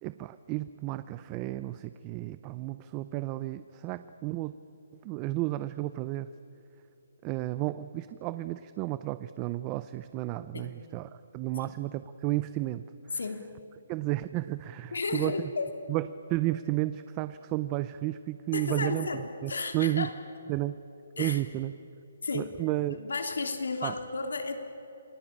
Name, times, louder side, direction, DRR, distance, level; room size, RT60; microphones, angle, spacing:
voice 1, 0.0-4.5 5.0-6.3 7.2-12.9 13.9-15.5 15.9-19.1 19.4-20.1 20.5-20.8 21.2-21.7 22.3-23.0 23.8-24.0, right 16 dB, 20° right, 13 dB, 0.5 m, -32 dB
voice 2, 14.9-15.7 18.5-20.1 21.2-21.4 22.2-22.5 22.9-24.6, left 4 dB, 85° left, 6 dB, 3.3 m, -33 dB
28.0 x 19.5 x 8.9 m, 2.8 s
hypercardioid pair, 165°, 0 cm